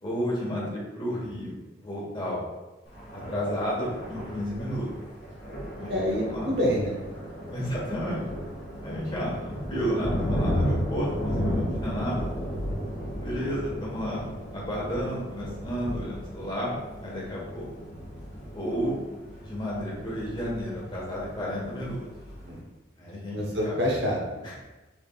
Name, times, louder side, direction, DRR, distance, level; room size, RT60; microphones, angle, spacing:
voice 1, 0.0-2.4 3.1-4.9 5.8-6.5 7.5-8.2 8.8-12.3 13.1-16.7 17.0-17.7 18.5-18.9 19.4-22.1 23.0-23.7 24.4-24.6, equal, 25° left, -5 dB, 1.2 m, -32 dB
Thunder, 2.9-22.6, equal, 50° left, 1.2 m, -34 dB
voice 2, 5.9-7.0 22.5-22.6 23.3-24.4, equal, 60° right, -2 dB, 0.8 m, -27 dB
5.8 x 3.4 x 2.3 m, 1.1 s
head